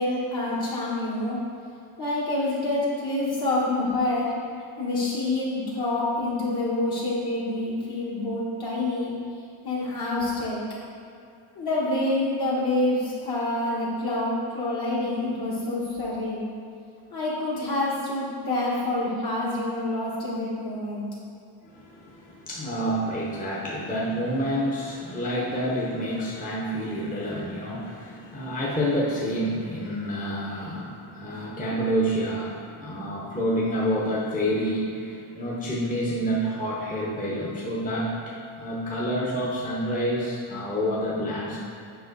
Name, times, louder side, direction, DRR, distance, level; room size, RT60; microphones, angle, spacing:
voice 1, 0.0-1.4 2.0-4.3 4.8-9.1 9.6-10.6 11.5-16.5 17.1-21.0, left 2 dB, 45° left, -7 dB, 1.4 m, -27 dB
voice 2, 21.6-41.6, equal, 15° left, -6 dB, 0.8 m, -28 dB
7.9 x 5.4 x 3.9 m, 2.5 s
wide cardioid pair, 165°, 50 cm